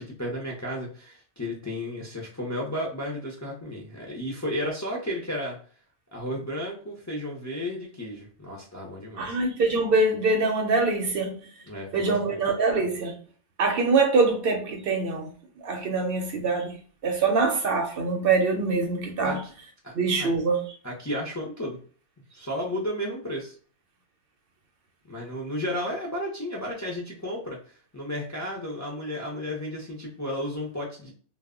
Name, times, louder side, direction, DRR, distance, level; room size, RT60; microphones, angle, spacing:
voice 1, 0.0-5.6 6.1-9.4 11.7-12.4 19.2-19.5 19.8-20.3 20.8-21.8 22.3-23.5 25.1-27.6 27.9-31.1, left 1 dB, 25° left, 0.4 m, -33 dB
voice 2, 9.2-11.4 11.9-13.1 13.6-15.3 15.6-16.7 17.0-19.4 20.0-20.6, right 3 dB, 65° right, 0.7 m, -24 dB
2.1 x 2.0 x 3.5 m
omnidirectional pair, 1.2 m